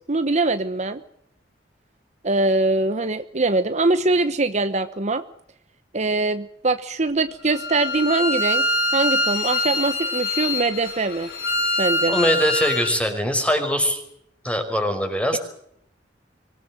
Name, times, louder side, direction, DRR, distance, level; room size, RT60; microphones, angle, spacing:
voice 1, 0.1-1.0 2.2-5.2 5.9-11.3 11.8-12.1, right 2 dB, 40° right, 10 dB, 1.1 m, -22 dB
Bowed string instrument, 7.5-12.9, left 1 dB, 85° left, 7.3 m, -24 dB
voice 2, 12.1-14.0 14.4-15.4, equal, 5° left, 5 dB, 5.5 m, -22 dB
25.0 x 18.5 x 7.7 m, 0.71 s
head